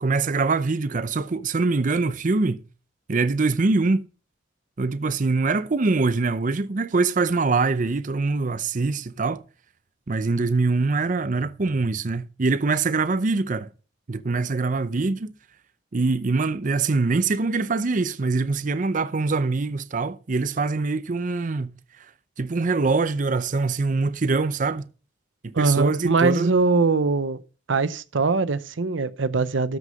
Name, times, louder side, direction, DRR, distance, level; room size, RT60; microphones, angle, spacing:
voice 1, 0.0-2.6 3.1-4.1 4.8-9.4 10.1-13.7 14.1-15.3 15.9-22.1 22.4-24.9 25.4-26.5, right 3 dB, 45° right, 0.6 m, -23 dB
voice 2, 25.5-27.4 27.7-29.8, right 3 dB, 90° right, 0.7 m, -22 dB
13.0 x 6.3 x 5.1 m
head